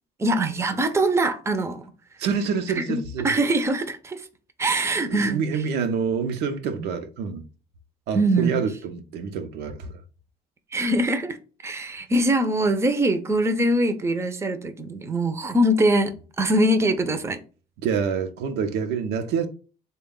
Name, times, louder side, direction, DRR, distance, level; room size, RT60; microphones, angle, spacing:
voice 1, 0.2-1.9 2.7-4.3 4.6-5.4 6.8-6.9 8.1-8.5 10.7-11.4 11.6-17.4, right 1 dB, 15° right, 0.5 m, -23 dB
voice 2, 2.2-3.3 5.0-7.4 8.1-10.0 17.8-19.5, right 6 dB, 85° right, 0.6 m, -27 dB
3.4 x 2.2 x 3.6 m
cardioid pair, 110°, 17 cm